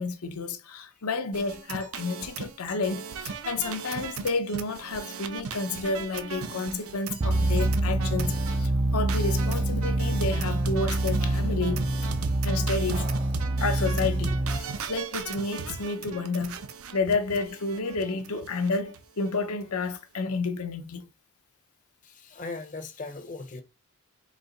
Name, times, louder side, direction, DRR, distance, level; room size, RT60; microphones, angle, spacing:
voice 1, 0.0-11.8 12.4-13.0 13.6-16.6 16.9-21.1, left 3 dB, 85° left, 0.7 m, -30 dB
sound 1, 1.3-8.7 9.1-19.0 19.3-19.4 19.6-19.9, right 6 dB, 75° right, 0.6 m, -37 dB
sound 2, 7.2-14.6, right 1 dB, 25° right, 0.3 m, -26 dB
sound 3, 12.9-13.5, right 3 dB, 40° right, 1.0 m, -43 dB
voice 2, 22.0-23.6, left 3 dB, 35° left, 0.6 m, -38 dB
3.9 x 2.9 x 3.9 m
head